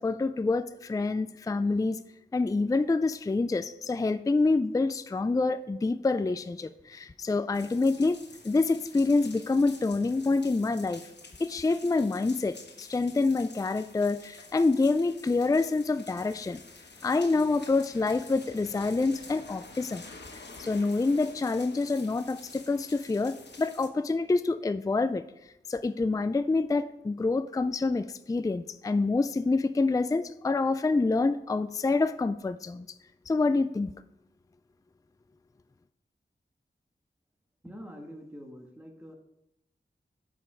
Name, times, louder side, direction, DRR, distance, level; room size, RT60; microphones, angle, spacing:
voice 1, 0.0-2.0 2.3-8.2 8.4-11.0 11.4-16.6 17.0-20.1 20.6-25.2 25.7-32.9 33.3-33.9, left 3 dB, 20° left, 12 dB, 0.3 m, -27 dB
sound 1, 7.5-23.9, left 3 dB, 65° left, 1.0 m, -49 dB
voice 2, 37.6-39.1, equal, 10° right, 2 dB, 1.6 m, -45 dB
8.1 x 5.2 x 4.8 m, 0.83 s
wide cardioid pair, 50°, 19 cm